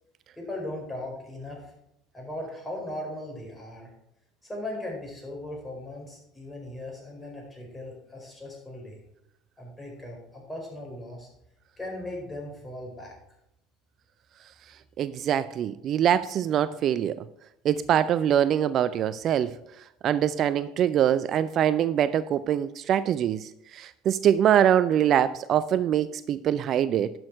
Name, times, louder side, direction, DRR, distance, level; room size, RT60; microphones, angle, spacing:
voice 1, 0.4-1.7 2.1-3.9 4.4-9.0 9.6-11.3 11.8-13.2, left 1 dB, 15° left, -1 dB, 4.6 m, -38 dB
voice 2, 15.0-17.2 17.6-19.5 20.0-27.1, right 10 dB, 50° right, 15 dB, 0.4 m, -24 dB
11.5 x 6.2 x 4.7 m, 0.81 s
hypercardioid pair, 70°, 0 cm